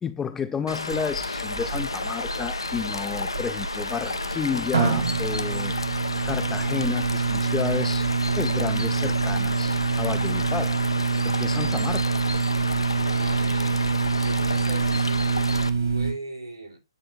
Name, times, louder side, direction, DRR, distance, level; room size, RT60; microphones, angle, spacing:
voice 1, 0.0-5.7 6.2-8.1 8.4-10.8 11.2-12.2, left 7 dB, 10° left, 0.5 m, -31 dB
sound 1, 0.7-15.7, left 3 dB, 75° left, 0.8 m, -32 dB
sound 2, 0.9-16.1, right 5 dB, 60° right, 2.1 m, -26 dB
voice 2, 13.0-13.8 14.2-16.8, right 2 dB, 85° right, 3.0 m, -38 dB
9.4 x 3.7 x 3.2 m
figure-of-eight pair, 125°, 3 cm